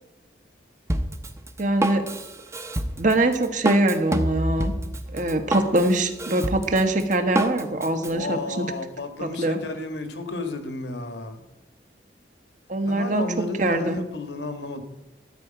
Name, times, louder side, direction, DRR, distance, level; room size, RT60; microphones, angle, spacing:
Drum kit, 0.9-8.1, right 1 dB, 15° right, 0.8 m, -28 dB
voice 1, 1.6-2.1 3.0-4.7 5.1-8.6 9.2-9.6 12.7-13.2 13.6-14.0, right 2 dB, 45° right, 7 dB, 1.2 m, -23 dB
voice 2, 8.1-11.4 12.8-14.8, left 3 dB, 80° left, 7 dB, 1.5 m, -32 dB
13.0 x 5.0 x 8.8 m, 0.98 s
head